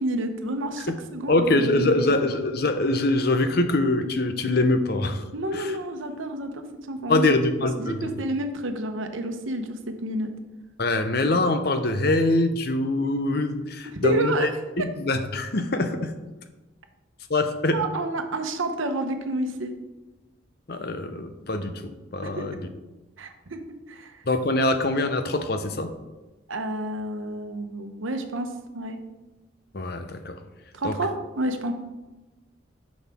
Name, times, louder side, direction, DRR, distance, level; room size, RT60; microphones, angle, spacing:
voice 1, 0.0-2.1 5.3-7.4 7.8-10.3 13.9-14.5 17.7-19.7 22.2-22.5 23.2-24.2 26.5-29.0 30.7-31.7, right 1 dB, 80° right, 6 dB, 0.9 m, -29 dB
voice 2, 1.3-5.2 5.5-5.8 7.1-8.1 10.8-14.5 14.8-16.1 17.3-17.8 20.7-22.7 24.3-25.9 29.7-30.4 30.8-31.0, left 2 dB, 50° left, 8 dB, 0.7 m, -24 dB
9.8 x 6.2 x 3.6 m, 1.1 s
head